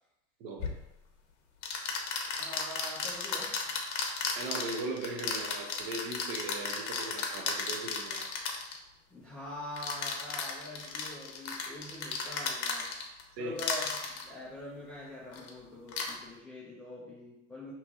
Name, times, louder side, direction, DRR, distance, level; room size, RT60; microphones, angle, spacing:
sound 1, 0.6-0.8 1.6-8.8 9.8-13.2 13.6-14.2 15.3-15.5 15.9-16.1, left 5 dB, 45° left, 0.9 m, -34 dB
voice 1, 2.3-3.8 9.1-12.9 13.4-17.7, left 1 dB, 5° left, -7 dB, 0.4 m, -44 dB
voice 2, 4.4-8.3 13.4-13.6, right 3 dB, 40° right, 3 dB, 0.8 m, -38 dB
4.4 x 3.0 x 3.5 m, 0.91 s
supercardioid pair, 140°, 37 cm